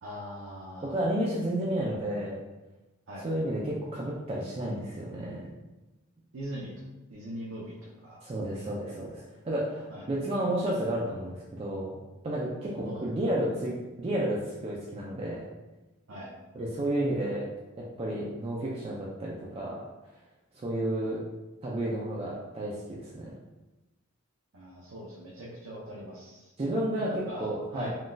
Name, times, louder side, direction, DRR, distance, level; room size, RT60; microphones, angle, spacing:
voice 1, 0.0-1.0 3.1-3.2 6.3-6.7 7.1-8.2 9.9-10.0 12.8-13.0 16.1-16.3 24.5-26.5 27.3-27.9, equal, 75° right, -6 dB, 0.6 m, -41 dB
voice 2, 0.8-2.4 3.2-5.5 8.2-12.0 12.2-15.5 16.5-17.5 17.8-19.8 20.6-21.2 21.6-23.3 26.6-27.9, right 1 dB, 30° right, -5 dB, 0.3 m, -31 dB
3.7 x 2.3 x 2.5 m, 1.1 s
head